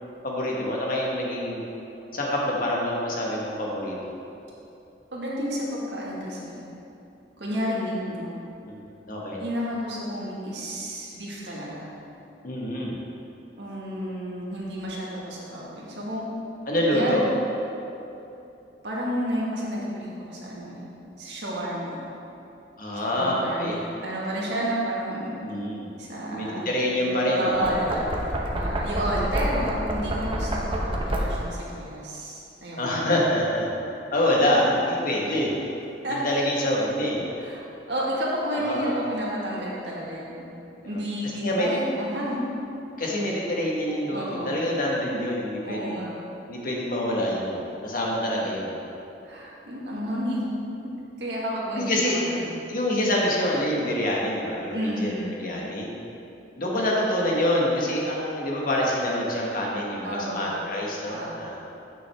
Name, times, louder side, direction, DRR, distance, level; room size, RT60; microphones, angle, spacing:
voice 1, 0.2-1.6 2.1-4.0 8.6-8.8 9.1-9.4 12.4-13.0 16.7-17.2 22.8-23.8 25.4-27.8 32.8-33.7 34.1-35.5 36.1-37.2 38.5-38.9 40.8-41.0 41.4-41.7 43.0-46.0 46.5-48.7 51.7-52.2 52.7-55.9 56.6-61.5, left 1 dB, 50° left, -3 dB, 1.4 m, -26 dB
voice 2, 5.1-6.6 7.4-8.3 9.4-11.9 13.6-16.2 16.9-17.3 18.8-20.8 21.2-22.0 23.1-25.4 26.0-26.7 27.0-30.5 30.8-33.1 36.0-36.2 37.4-37.6 37.9-40.4 40.8-42.4 44.1-44.6 45.6-46.1 49.2-50.4 51.2-52.5 54.7-55.3 60.0-60.6 61.1-61.4, equal, 75° right, -5 dB, 1.7 m, -31 dB
Knock, 27.5-31.6, right 1 dB, 30° right, 0.8 m, -28 dB
8.8 x 6.2 x 3.5 m, 2.8 s
head